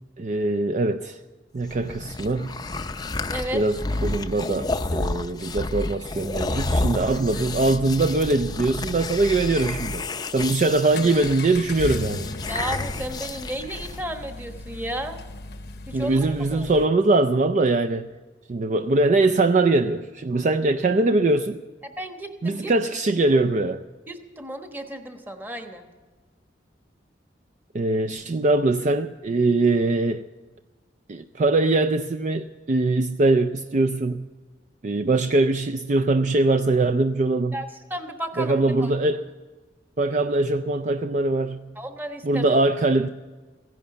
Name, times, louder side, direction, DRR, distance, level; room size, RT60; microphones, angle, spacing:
voice 1, 0.2-1.2 1.5-2.5 3.5-10.0 10.3-12.3 15.9-18.1 18.5-21.6 22.4-23.8 27.7-30.2 31.1-34.3 34.8-37.6 38.4-39.2 40.0-41.7 42.2-43.1, right 2 dB, 40° right, 0.4 m, -22 dB
sound 1, 1.6-14.0, left 2 dB, 20° left, 0.5 m, -30 dB
voice 2, 3.3-3.6 12.5-15.2 15.9-16.7 21.8-22.7 24.1-25.9 37.5-38.9 41.7-42.5, right 1 dB, 10° right, 1.1 m, -33 dB
Accelerating revving vroom, 10.3-16.9, left 2 dB, 60° left, 0.8 m, -36 dB
15.5 x 11.0 x 7.2 m
head